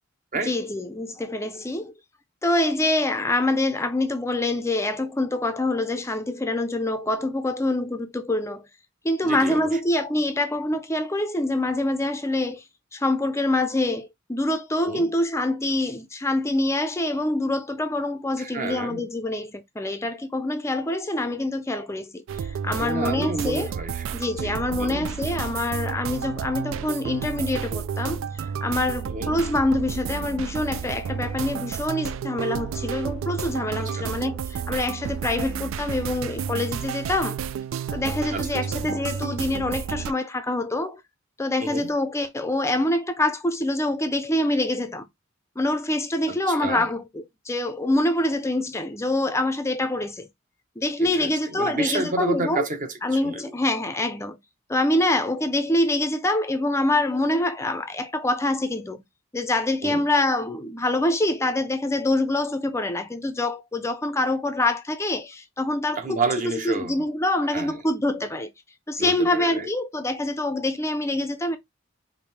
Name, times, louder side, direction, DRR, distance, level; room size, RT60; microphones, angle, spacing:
voice 1, 0.4-1.9 2.4-8.7 9.0-12.6 12.9-23.7 24.1-37.4 37.9-41.0 41.4-45.1 45.6-47.0 47.5-50.3 50.8-52.6 53.0-54.4 54.7-59.0 59.3-66.2 66.6-68.5 68.9-71.6, left 1 dB, 15° left, 0.5 m, -25 dB
voice 2, 9.2-9.8 14.8-15.1 18.4-19.1 22.8-25.1 29.1-29.4 33.8-34.1 38.3-38.9 41.6-41.9 46.3-46.9 51.0-53.5 59.8-60.0 66.0-67.1 67.5-67.8 69.0-69.7, right 2 dB, 40° right, 1.0 m, -30 dB
sound 1, 22.3-40.1, right 7 dB, 70° right, 0.3 m, -31 dB
5.2 x 2.7 x 3.2 m
head